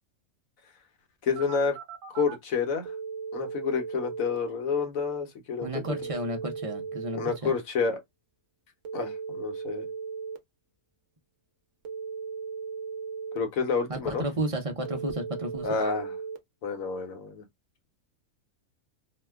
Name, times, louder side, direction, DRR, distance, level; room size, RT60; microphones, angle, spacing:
voice 1, 1.2-1.8 2.1-2.9 3.3-5.8 7.1-8.0 8.9-9.9 13.3-14.2 15.6-16.1 16.6-17.4, left 5 dB, 75° left, 1.3 m, -29 dB
Telephone, 1.4-2.4 2.9-4.4 5.9-7.4 8.8-10.4 11.8-13.4 14.9-16.4, right 5 dB, 60° right, 0.8 m, -37 dB
voice 2, 5.6-7.5 13.9-15.8, right 1 dB, 40° right, 0.4 m, -32 dB
2.9 x 2.2 x 3.3 m
omnidirectional pair, 1.5 m